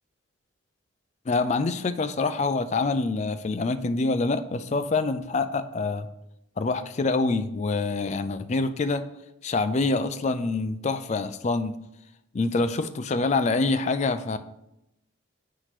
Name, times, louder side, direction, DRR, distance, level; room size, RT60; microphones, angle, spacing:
voice 1, 1.3-6.1 6.6-9.0 9.4-11.8 12.3-14.4, left 3 dB, 35° left, 10 dB, 0.3 m, -26 dB
8.0 x 3.0 x 5.8 m, 0.86 s
head